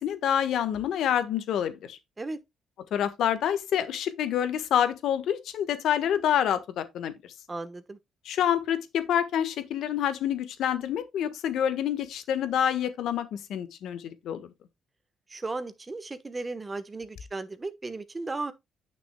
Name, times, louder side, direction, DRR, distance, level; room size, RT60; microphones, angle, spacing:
voice 1, 0.0-2.0 2.9-7.3 8.2-14.5, left 9 dB, 75° left, 1.3 m, -27 dB
voice 2, 7.5-8.0 15.3-18.5, right 3 dB, 25° right, 1.1 m, -35 dB
9.8 x 6.1 x 2.2 m
cardioid pair, 90°, 0 cm